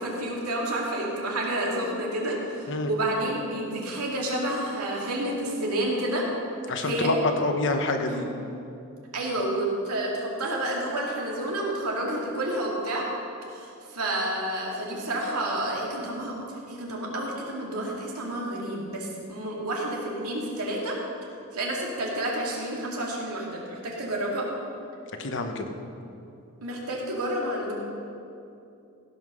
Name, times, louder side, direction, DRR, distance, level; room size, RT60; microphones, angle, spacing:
voice 1, 0.0-6.3 6.8-7.1 8.1-8.3 9.1-13.1 13.5-21.0 21.5-24.5 26.6-27.7, right 1 dB, 80° right, -3 dB, 2.5 m, -30 dB
voice 2, 6.7-8.2 25.2-25.7, left 2 dB, 55° left, 6 dB, 1.0 m, -27 dB
16.0 x 5.7 x 6.3 m, 2.7 s
head